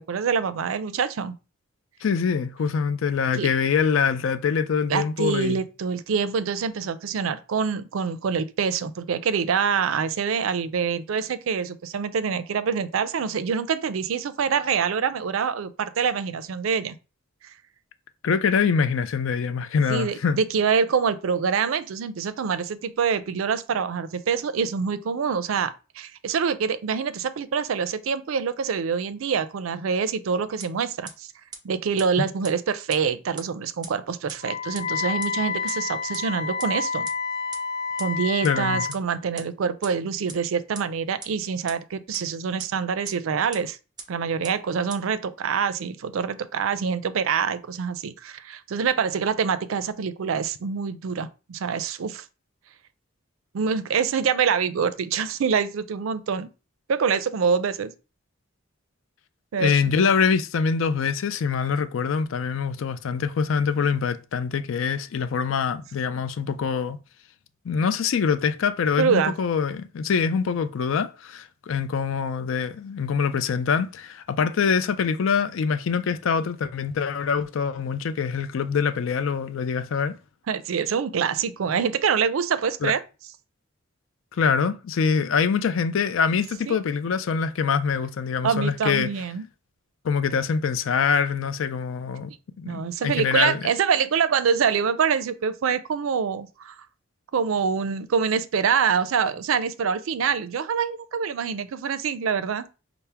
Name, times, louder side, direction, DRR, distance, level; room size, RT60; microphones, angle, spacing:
voice 1, 0.1-1.3 3.4-3.5 4.9-16.9 19.9-31.3 31.6-37.1 38.0-43.8 44.1-52.2 53.5-56.5 56.9-57.9 59.5-59.7 69.0-69.3 80.5-83.0 86.7-86.8 88.4-89.4 92.6-96.7 97.3-102.8, right 6 dB, 90° right, 0.4 m, -25 dB
voice 2, 2.0-5.6 18.2-20.4 32.2-32.3 38.4-38.9 59.6-67.0 67.6-80.1 82.8-82.9 84.4-89.1 90.0-92.3 92.6-93.6, left 6 dB, 75° left, 0.4 m, -24 dB
sound 1, 30.6-30.7 31.1-31.2 31.5-31.6 32.0-32.1 32.4-32.5 32.9-33.0 33.4-33.5 33.8-33.9 34.3-34.4 34.7-34.8 35.2-35.3 35.7-35.8 36.1-36.2 36.6-36.7 37.1-37.2 37.5-37.6 38.0-38.1 38.4-38.5 38.9-39.0 39.4-39.5 39.8-39.9 40.3-40.4 40.7-40.8 41.2-41.3 41.7-41.8 42.1-42.2 42.6-42.7 43.0-43.1 43.5-43.6 44.0-44.1 44.4-44.5 44.9-45.0, right 5 dB, 20° right, 0.6 m, -37 dB
Wind instrument woodwind instrument, 34.4-39.0, left 5 dB, 20° left, 0.6 m, -29 dB
5.6 x 2.0 x 3.4 m
head